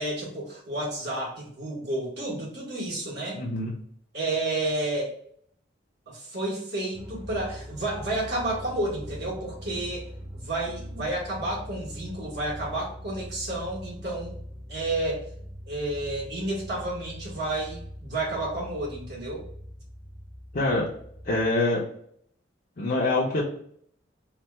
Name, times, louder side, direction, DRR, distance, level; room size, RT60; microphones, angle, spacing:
voice 1, 0.0-3.4 4.1-5.1 6.1-14.4 14.7-15.2 15.7-19.4, right 2 dB, 60° right, -4 dB, 1.6 m, -31 dB
voice 2, 3.3-3.7 20.5-20.9 21.2-21.8 22.8-23.4, left 2 dB, 50° left, -4 dB, 0.7 m, -25 dB
sound 1, 6.9-21.5, equal, 25° right, 0.9 m, -42 dB
3.3 x 2.4 x 4.3 m, 0.63 s
head